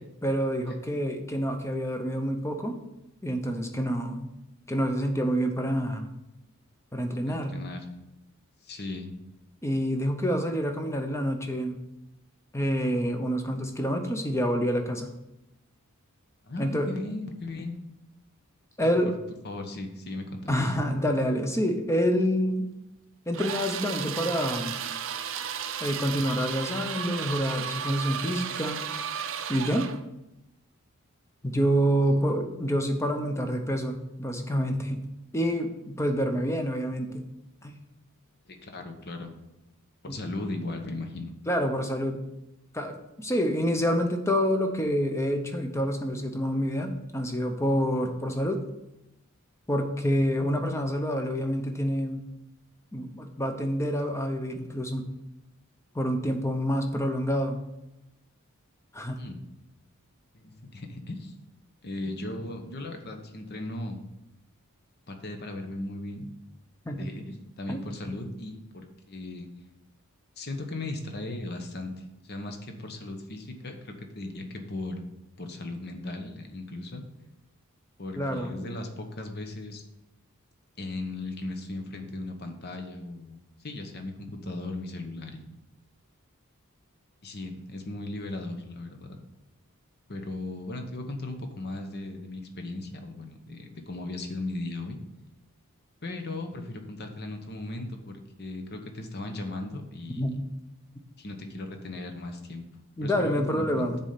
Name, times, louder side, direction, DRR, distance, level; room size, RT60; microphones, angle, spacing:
voice 1, 0.2-2.8 3.2-4.3 4.7-6.1 6.9-7.6 9.6-11.8 12.5-15.1 16.6-16.9 18.8-19.1 20.5-22.6 23.3-24.8 25.8-28.9 29.5-29.9 31.4-35.0 35.3-37.2 37.6-37.8 40.1-40.2 41.5-42.2 42.7-48.6 49.7-52.2 52.9-55.1 55.9-57.6 58.9-59.2 66.9-67.1 67.7-67.8 78.2-78.5 100.2-100.4 103.0-104.0, equal, 10° left, 5 dB, 0.7 m, -27 dB
voice 2, 7.3-7.9 8.6-9.1 16.5-17.8 18.8-19.1 19.4-20.6 32.1-32.3 38.5-39.3 40.0-41.3 50.4-50.5 59.1-59.4 60.3-61.3 61.8-64.0 65.1-66.3 67.0-69.5 70.4-75.0 75.4-77.0 78.0-79.8 80.8-85.5 87.2-89.2 90.1-95.0 96.0-100.3 101.2-102.6 103.0-103.9, left 2 dB, 45° left, 5 dB, 1.0 m, -37 dB
sound 1, 23.3-30.0, right 8 dB, 60° right, 0.5 m, -34 dB
7.0 x 4.2 x 6.6 m, 0.90 s
head